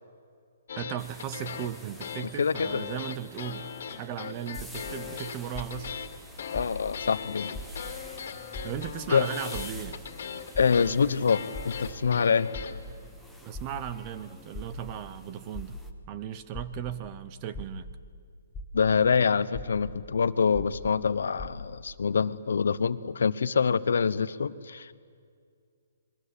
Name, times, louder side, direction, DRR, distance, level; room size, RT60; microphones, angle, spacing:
sound 1, 0.7-12.8, left 7 dB, 55° left, 2.3 m, -39 dB
voice 1, 0.8-5.9 8.6-10.0 13.4-15.8 16.1-17.9, right 10 dB, 25° right, 13 dB, 0.9 m, -37 dB
sound 2, 1.0-15.9, equal, ahead, 1.2 m, -51 dB
voice 2, 2.4-2.8 6.5-7.6 9.1-9.3 10.6-12.5 18.7-24.9, left 6 dB, 75° left, 15 dB, 1.0 m, -25 dB
sound 3, 4.6-4.9 5.5-5.9 6.5-6.9 7.5-7.9 8.5-8.9 9.5-9.9 10.5-10.9 11.5-11.9 12.5-12.9 13.5-13.9 14.5-14.9 15.5-15.9 16.5-16.9 17.5-17.9 18.5-18.9 19.5-19.9 20.5-20.9 21.4-21.5, left 1 dB, 15° left, 1.2 m, -39 dB
27.5 x 22.0 x 8.5 m, 2.3 s
hypercardioid pair, 170°, 0 cm